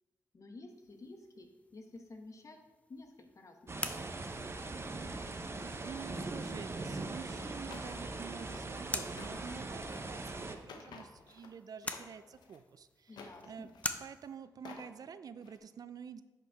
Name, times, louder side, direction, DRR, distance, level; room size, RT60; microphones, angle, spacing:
voice 1, 0.3-1.5 1.7-2.6 2.9-4.1 6.1-6.3 13.1-13.7, left 2 dB, 50° left, 4 dB, 1.1 m, -51 dB
sound 1, 0.7-14.4, left 2 dB, 20° left, 0.7 m, -47 dB
sound 2, 3.7-10.6, right 2 dB, 35° right, 0.8 m, -41 dB
voice 2, 5.8-13.7 14.0-16.2, right 7 dB, 60° right, 13 dB, 0.4 m, -48 dB
sound 3, 7.7-8.0 8.4-8.6 9.0-11.5 11.8-12.6 13.1-13.9 14.5-14.9 15.4-15.6, left 4 dB, 85° left, 0.7 m, -53 dB
9.8 x 4.3 x 3.5 m, 1.2 s
cardioid pair, 50°, 7 cm